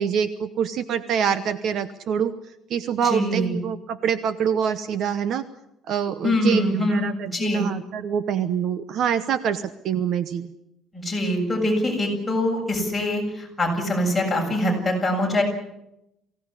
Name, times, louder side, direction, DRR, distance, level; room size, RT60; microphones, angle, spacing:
voice 1, 0.0-2.3 2.7-5.4 5.9-10.5, right 8 dB, 50° right, 12 dB, 1.0 m, -25 dB
voice 2, 3.0-3.5 6.2-7.7 10.9-15.4, left 1 dB, 5° left, -3 dB, 7.5 m, -24 dB
23.5 x 17.0 x 9.8 m, 0.86 s
cardioid pair, 175°, 0 cm